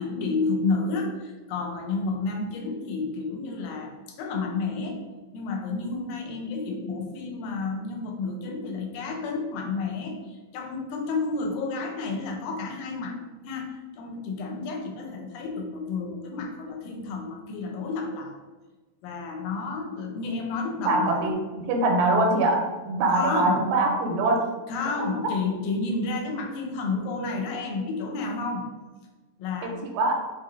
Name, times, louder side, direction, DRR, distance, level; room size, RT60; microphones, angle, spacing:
voice 1, 0.0-5.0 5.3-13.2 13.4-18.4 19.0-21.7 23.1-23.6 24.7-28.7 29.4-29.8, left 3 dB, 85° left, 2 dB, 2.3 m, -31 dB
voice 2, 20.9-21.3 21.6-24.5 25.0-25.1 29.6-30.2, right 2 dB, 90° right, 2 dB, 2.4 m, -23 dB
6.0 x 2.8 x 2.5 m, 1.2 s
omnidirectional pair, 3.9 m